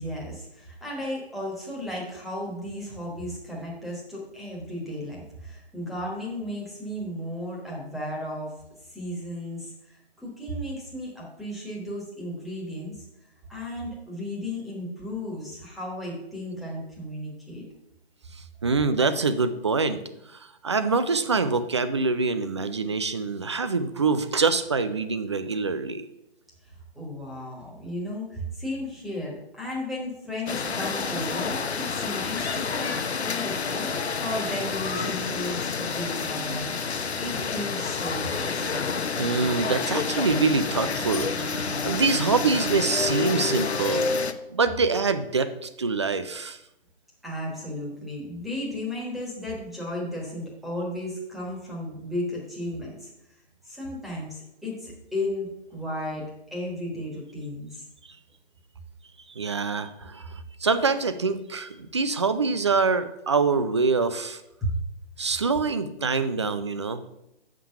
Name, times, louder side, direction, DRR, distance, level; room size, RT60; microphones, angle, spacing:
voice 1, 0.0-8.5 8.9-13.0 13.5-17.6 26.6-38.9 47.2-53.1 53.6-57.8 64.6-64.8, left 1 dB, ahead, -4 dB, 1.3 m, -34 dB
voice 2, 18.3-20.0 20.3-26.1 39.2-44.1 44.5-46.6 59.3-64.4 65.2-67.0, right 4 dB, 30° right, 11 dB, 0.4 m, -25 dB
sound 1, 30.5-44.3, left 5 dB, 85° left, 0.9 m, -29 dB
6.9 x 5.9 x 5.8 m, 0.85 s
figure-of-eight pair, 150°, 32 cm